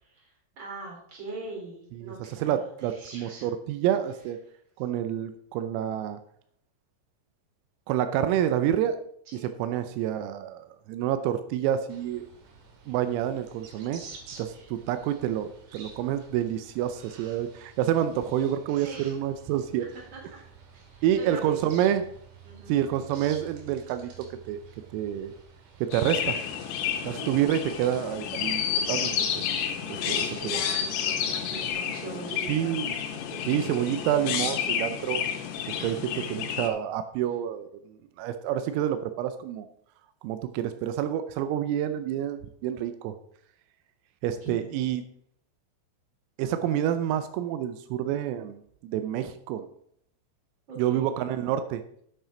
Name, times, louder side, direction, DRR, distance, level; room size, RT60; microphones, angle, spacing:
voice 1, 0.0-3.5 9.3-9.6 14.3-14.7 18.7-19.1 19.9-20.4 20.7-21.9 22.4-22.7 27.0-27.6 29.3-29.5 29.9-32.8 33.3-33.9 35.7-36.3 44.2-44.8 50.7-51.1, right 3 dB, 25° right, -2 dB, 3.2 m, -42 dB
voice 2, 2.0-4.4 4.8-6.2 7.9-9.0 9.4-12.3 12.9-14.0 14.4-19.9 21.0-22.0 22.7-24.1 24.5-24.6 24.9-25.3 25.8-26.4 27.1-28.6 28.9-29.3 30.1-30.6 32.5-32.9 33.5-35.2 35.8-37.7 38.2-39.7 40.2-43.1 44.2-45.0 46.4-49.7 50.8-51.8, right 11 dB, 85° right, 10 dB, 3.3 m, -28 dB
sound 1, 11.9-31.7, right 6 dB, 65° right, 3.3 m, -50 dB
Chirp tweet, 25.9-36.7, left 8 dB, 80° left, 3.8 m, -30 dB
9.1 x 8.3 x 5.0 m, 0.67 s
omnidirectional pair, 6.0 m